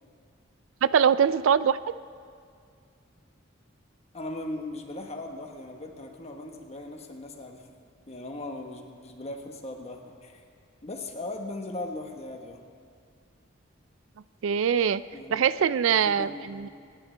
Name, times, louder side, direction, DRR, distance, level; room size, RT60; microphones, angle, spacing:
voice 1, 0.8-1.8 14.4-15.0 15.3-16.7, right 7 dB, 80° right, 16 dB, 0.4 m, -23 dB
voice 2, 4.1-7.7 8.1-10.4 10.8-12.6 15.1-15.4 15.9-16.7, left 2 dB, 35° left, 2 dB, 1.3 m, -38 dB
25.5 x 10.0 x 3.4 m, 2.2 s
head